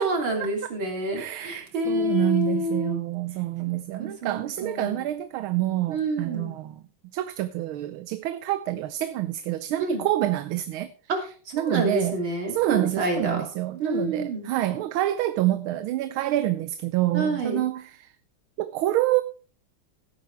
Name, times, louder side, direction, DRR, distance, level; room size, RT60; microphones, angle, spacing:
voice 1, 0.0-3.0 3.7-5.1 5.9-6.5 9.8-10.0 11.1-11.2 11.5-13.4 13.8-14.5 17.1-17.6, right 1 dB, 70° right, 3.7 m, -28 dB
voice 2, 1.1-6.7 7.1-10.9 11.5-12.1 12.5-17.8 18.6-19.2, right 15 dB, 85° right, 1.5 m, -27 dB
16.5 x 9.0 x 3.3 m
omnidirectional pair, 2.2 m